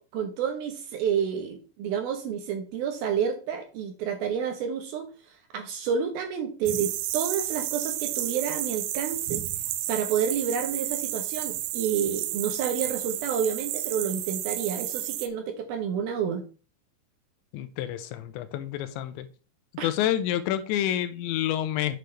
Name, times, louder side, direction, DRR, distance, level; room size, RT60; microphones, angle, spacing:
voice 1, 0.0-9.4 9.9-16.4 19.8-19.9, right 7 dB, 70° right, 5 dB, 2.5 m, -29 dB
sound 1, 6.7-15.3, right 13 dB, 90° right, 3.1 m, -31 dB
voice 2, 17.5-19.3 19.8-22.0, left 11 dB, 90° left, 11 dB, 3.0 m, -28 dB
8.6 x 7.9 x 3.2 m, 0.36 s
omnidirectional pair, 5.2 m